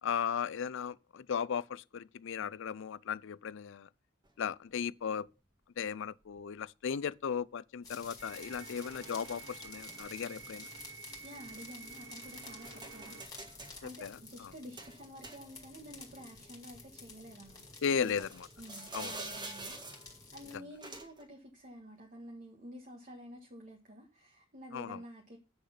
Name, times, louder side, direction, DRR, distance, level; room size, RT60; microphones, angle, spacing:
voice 1, 0.0-3.9 4.4-5.3 5.8-10.7 14.0-14.5 17.8-18.5 18.9-19.1 20.5-20.6 24.7-25.0, left 7 dB, 65° left, 0.4 m, -36 dB
sound 1, 4.2-4.3 5.3-5.4 6.4-6.6 9.9-10.3 10.8-12.0 12.4-13.8 14.8-15.8 16.2-16.3 18.0-20.2 20.8-21.3, right 2 dB, 20° right, 1.6 m, -47 dB
sound 2, 7.8-20.6, left 3 dB, 20° left, 2.2 m, -51 dB
sound 3, 8.2-13.3, right 6 dB, 65° right, 1.3 m, -50 dB
voice 2, 11.2-18.3 18.6-19.8 20.3-25.4, equal, 40° right, 1.5 m, -50 dB
8.1 x 6.5 x 5.7 m
head